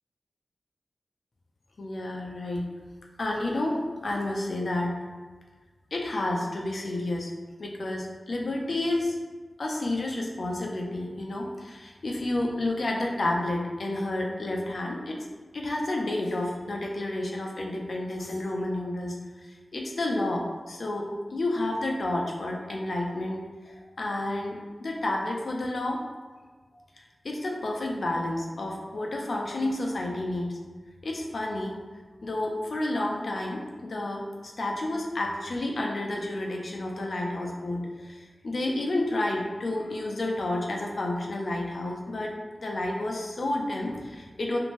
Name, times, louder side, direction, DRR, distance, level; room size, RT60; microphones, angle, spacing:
voice 1, 1.8-2.7 3.2-4.9 5.9-7.3 7.6-9.2 9.6-15.3 15.5-19.2 19.7-26.0 27.2-30.6 31.0-31.7 32.2-42.3 42.6-44.6, left 1 dB, 70° left, 0 dB, 0.4 m, -30 dB
2.6 x 2.6 x 3.0 m, 1.4 s
wide cardioid pair, 60°, 0 cm